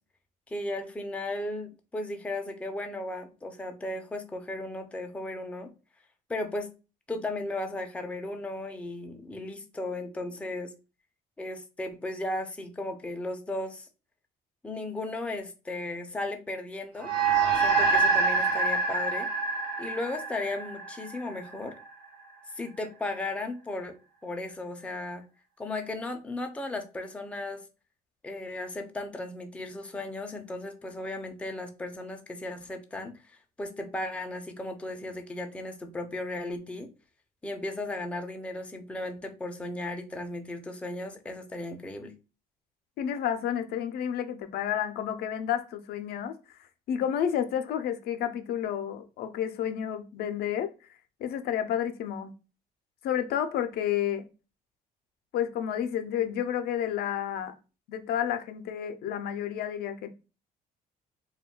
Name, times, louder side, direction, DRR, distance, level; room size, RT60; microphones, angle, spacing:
voice 1, 0.5-5.7 6.3-6.7 7.1-10.7 11.4-13.9 14.6-17.1 17.5-19.3 19.8-21.8 22.5-24.0 24.2-25.2 25.6-27.6 28.2-36.9 37.4-42.1, left 2 dB, 5° left, 0.4 m, -35 dB
sound 1, 17.0-21.7, right 4 dB, 65° right, 0.7 m, -26 dB
voice 2, 43.0-52.3 53.0-54.3 55.3-57.5 57.9-60.1, left 9 dB, 70° left, 0.4 m, -31 dB
2.2 x 2.2 x 3.6 m
cardioid pair, 110°, 17 cm